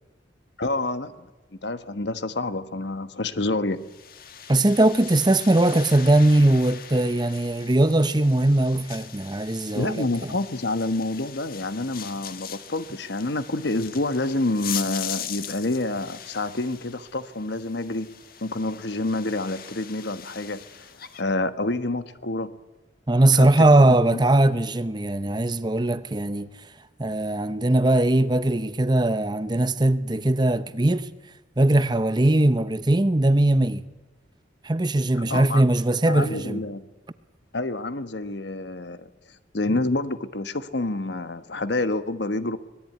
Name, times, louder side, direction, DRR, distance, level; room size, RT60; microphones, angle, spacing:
voice 1, 0.6-1.3 1.6-3.8 9.7-18.1 18.4-20.8 21.2-22.5 23.3-24.2 35.3-35.7 36.1-36.8 37.5-39.1 39.5-42.6, left 2 dB, 65° left, 1.3 m, -28 dB
sound 1, 3.8-21.2, left 9 dB, 50° left, 1.6 m, -40 dB
voice 2, 4.5-10.3 23.1-26.5 27.0-31.1 31.6-33.8 34.6-36.6, right 1 dB, 25° right, 0.8 m, -20 dB
25.0 x 19.0 x 9.3 m
head